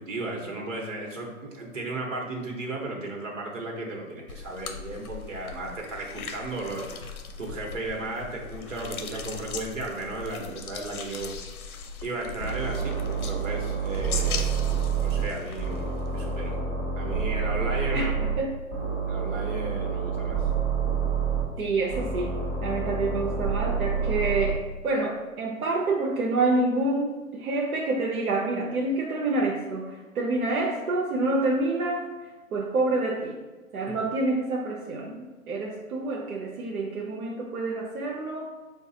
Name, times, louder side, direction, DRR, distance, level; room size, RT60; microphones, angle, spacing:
voice 1, 0.0-11.3 12.0-14.5 15.0-16.6 17.0-18.1 19.1-20.4, right 2 dB, 60° right, 0 dB, 1.0 m, -35 dB
sound 1, 4.3-16.5, left 5 dB, 75° left, 0.6 m, -39 dB
sound 2, 12.4-15.3 15.6-18.4 18.7-21.4 21.9-24.5, right 6 dB, 30° right, 0.7 m, -28 dB
voice 2, 21.6-32.1 32.5-33.4 33.7-38.5, right 2 dB, 85° right, 0 dB, 0.7 m, -27 dB
4.6 x 2.3 x 2.7 m, 1.2 s
hypercardioid pair, 175°, 43 cm